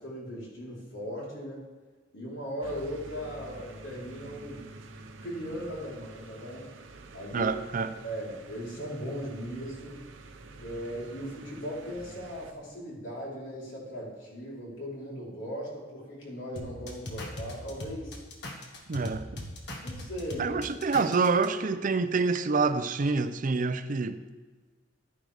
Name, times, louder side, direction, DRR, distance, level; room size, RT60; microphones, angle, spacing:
voice 1, 0.0-1.6 2.1-4.6 5.2-6.7 7.1-7.6 8.0-10.0 10.6-18.2 19.8-20.6, equal, 85° left, 3.7 m, -38 dB
sound 1, 2.6-12.5, right 2 dB, 90° right, 0.9 m, -48 dB
voice 2, 7.3-7.9 18.9-19.5 20.4-24.2, right 4 dB, 45° right, 0.5 m, -27 dB
sound 2, 16.6-21.5, left 1 dB, 60° left, 1.6 m, -39 dB
11.5 x 9.9 x 3.4 m
head